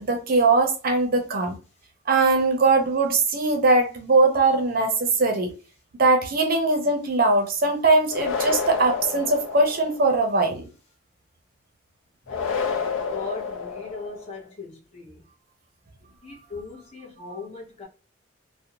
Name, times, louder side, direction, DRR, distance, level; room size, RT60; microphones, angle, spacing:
voice 1, 0.0-1.6 2.1-5.5 6.0-10.7, right 3 dB, 45° right, 0.5 m, -21 dB
sound 1, 8.1-10.2 12.3-14.3, left 5 dB, 85° left, 0.4 m, -29 dB
voice 2, 12.3-12.8 13.1-13.4 13.7-14.4 16.5-16.7 17.2-17.9, left 3 dB, 35° left, 0.8 m, -37 dB
2.5 x 2.0 x 2.8 m
head